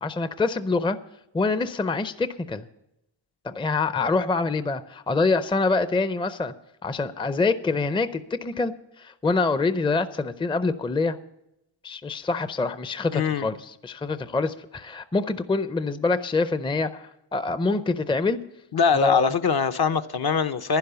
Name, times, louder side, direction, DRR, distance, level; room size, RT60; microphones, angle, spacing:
voice 1, 0.0-1.0 1.3-2.7 3.4-6.5 6.8-8.7 9.0-11.2 11.8-18.4 18.9-19.3, left 3 dB, 10° left, 0.5 m, -25 dB
voice 2, 13.1-13.5 18.7-20.8, left 6 dB, 50° left, 0.7 m, -22 dB
11.0 x 10.5 x 6.8 m
cardioid pair, 70°, 47 cm